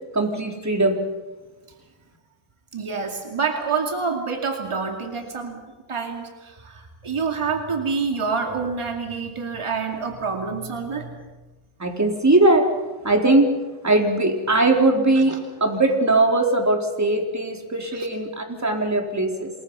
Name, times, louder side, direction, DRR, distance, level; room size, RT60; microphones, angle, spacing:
voice 1, 0.1-1.0 11.8-12.6 13.0-13.5 13.8-19.5, right 2 dB, 35° right, 2 dB, 4.1 m, -20 dB
voice 2, 2.7-5.6 5.9-11.2 15.2-15.4 17.9-18.1, right 5 dB, 80° right, 4 dB, 2.4 m, -27 dB
28.0 x 22.0 x 5.6 m, 1.2 s
wide cardioid pair, 70°, 49 cm